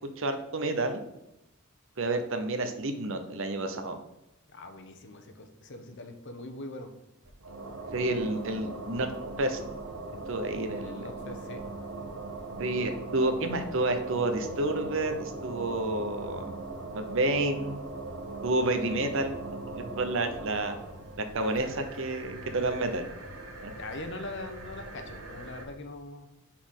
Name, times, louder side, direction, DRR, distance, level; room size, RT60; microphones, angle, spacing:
voice 1, 0.2-1.0 2.0-4.0 7.9-9.1 9.4-9.6 10.3-11.1 12.6-16.5 16.9-17.8 18.4-19.3 19.7-20.8 21.2-23.1 23.6-23.7, right 2 dB, 65° right, 7 dB, 0.9 m, -29 dB
voice 2, 4.5-6.9 10.7-11.6 23.7-26.3, left 2 dB, 55° left, 7 dB, 0.9 m, -42 dB
sound 1, 7.2-25.7, right 2 dB, 90° right, 1.4 m, -40 dB
5.9 x 4.2 x 6.3 m, 0.87 s
head